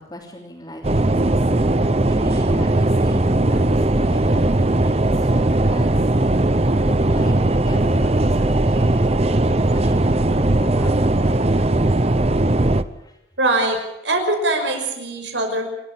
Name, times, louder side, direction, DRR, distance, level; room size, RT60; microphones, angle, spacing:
voice 1, 0.0-1.5 2.1-3.8 4.1-5.9 6.6-7.3 7.6-11.4 12.9-13.2, left 1 dB, 20° left, -4 dB, 3.4 m, -38 dB
sound 1, 0.8-12.8, right 2 dB, 35° right, 0.8 m, -18 dB
voice 2, 13.4-13.8 14.0-15.7, right 2 dB, 75° right, 4 dB, 5.8 m, -21 dB
27.5 x 13.0 x 8.8 m, 0.91 s
head